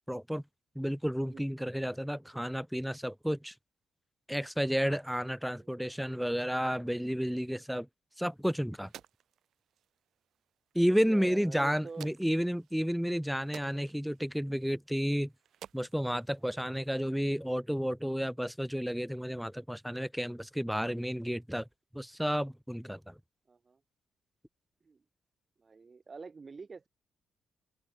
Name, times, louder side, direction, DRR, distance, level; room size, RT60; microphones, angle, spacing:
voice 1, 0.1-0.4 0.7-3.5 4.3-7.9 8.2-8.9 10.7-15.3 15.7-21.7 21.9-23.2, equal, ahead, 0.8 m, -31 dB
voice 2, 1.2-1.5 5.6-6.0 10.9-12.1 16.4-16.8 23.5-23.8 24.8-25.0 25.6-26.9, right 4 dB, 35° right, 1.2 m, -47 dB
sound 1, 8.1-17.1, right 10 dB, 75° right, 7.9 m, -56 dB
open air
cardioid pair, 85°, 0 cm